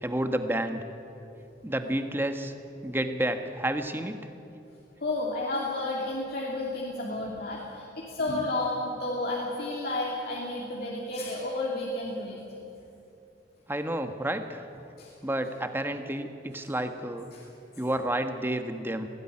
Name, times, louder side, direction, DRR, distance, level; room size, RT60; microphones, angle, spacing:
voice 1, 0.0-0.8 1.6-2.5 2.8-4.2 13.7-14.6 15.2-17.3 17.8-19.1, right 1 dB, 10° right, 7 dB, 1.3 m, -30 dB
voice 2, 5.0-12.4 15.0-15.1 17.3-17.4, left 2 dB, 60° left, -4 dB, 2.9 m, -31 dB
19.5 x 17.5 x 9.9 m, 2.7 s
head